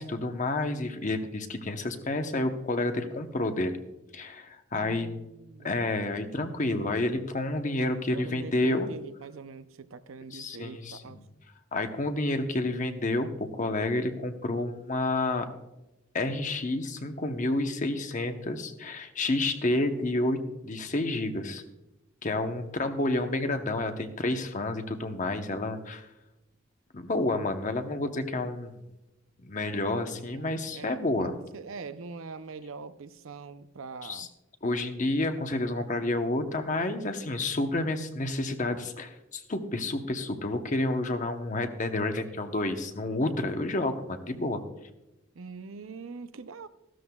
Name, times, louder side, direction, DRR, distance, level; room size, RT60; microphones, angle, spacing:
voice 1, 0.0-3.8 4.1-5.1 5.6-8.9 10.3-11.2 11.7-15.5 16.1-20.4 20.6-21.6 22.2-26.1 26.9-28.8 29.4-31.3 34.0-34.3 34.6-44.6, left 2 dB, 40° left, 7 dB, 0.9 m, -30 dB
voice 2, 4.7-5.7 8.1-11.2 30.2-34.3 45.3-46.7, right 4 dB, 90° right, 12 dB, 0.6 m, -43 dB
15.0 x 12.5 x 2.3 m, 0.99 s
head